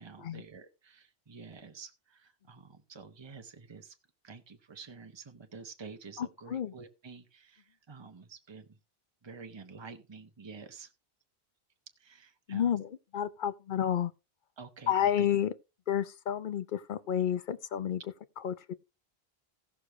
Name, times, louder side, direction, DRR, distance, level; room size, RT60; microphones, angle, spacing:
voice 1, 0.0-4.0 4.2-8.8 9.2-10.9 12.0-12.8 14.6-15.3, right 5 dB, 25° right, 1.0 m, -49 dB
voice 2, 6.2-6.7 12.5-14.1 14.9-15.5 15.9-18.0 18.4-18.7, left 9 dB, 55° left, 0.9 m, -30 dB
16.5 x 6.6 x 3.2 m
omnidirectional pair, 1.0 m